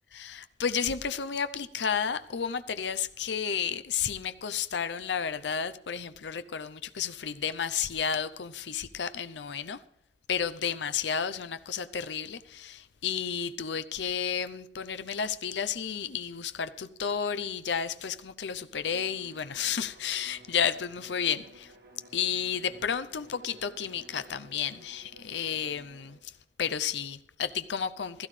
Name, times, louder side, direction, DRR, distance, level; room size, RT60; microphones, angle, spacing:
voice 1, 0.2-9.8 10.3-21.7 22.1-26.3 26.6-28.3, left 7 dB, 85° left, 0.6 m, -32 dB
Bowed string instrument, 18.8-26.2, right 1 dB, 60° right, 1.9 m, -54 dB
16.0 x 14.0 x 3.3 m
head